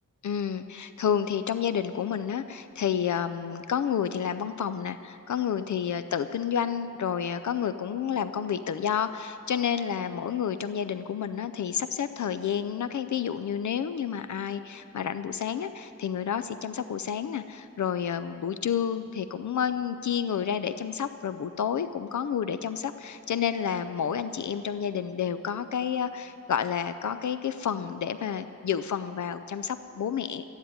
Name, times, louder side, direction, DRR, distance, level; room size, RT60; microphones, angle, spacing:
voice 1, 0.2-30.4, left 8 dB, 65° left, 11 dB, 0.5 m, -30 dB
13.5 x 10.5 x 9.3 m, 2.7 s
wide cardioid pair, 160°, 32 cm